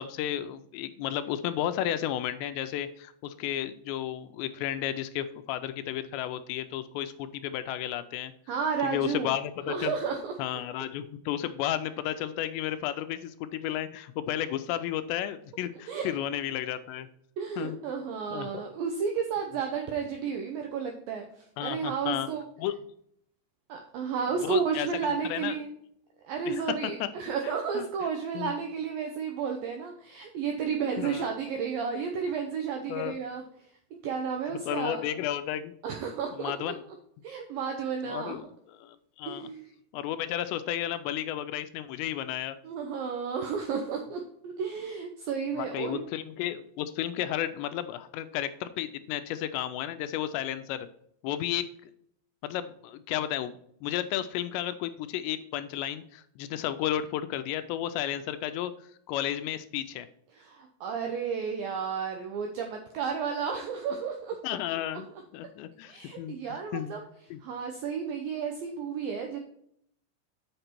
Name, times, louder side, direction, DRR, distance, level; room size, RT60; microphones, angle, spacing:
voice 1, 0.0-8.3 8.8-9.9 10.4-17.1 17.6-17.8 18.3-18.6 21.6-22.3 22.6-22.7 24.4-25.6 26.5-26.6 27.8-27.9 28.4-28.6 31.0-31.3 32.9-33.2 34.7-35.8 36.4-36.8 38.1-38.4 38.8-39.5 39.9-42.6 45.6-50.9 51.2-51.7 52.4-58.7 59.1-60.1 64.4-65.1 65.3-66.9 67.3-67.4, left 11 dB, 85° left, 11 dB, 2.7 m, -33 dB
voice 2, 8.5-9.3 9.7-10.3 15.9-16.1 17.4-22.5 23.7-25.7 26.2-33.4 33.9-35.0 35.8-36.7 37.2-38.4 39.3-39.7 42.6-46.0 60.3-64.4 65.9-67.0 67.4-69.4, right 6 dB, 80° right, 3 dB, 2.0 m, -32 dB
7.9 x 5.8 x 4.4 m, 0.69 s
omnidirectional pair, 5.2 m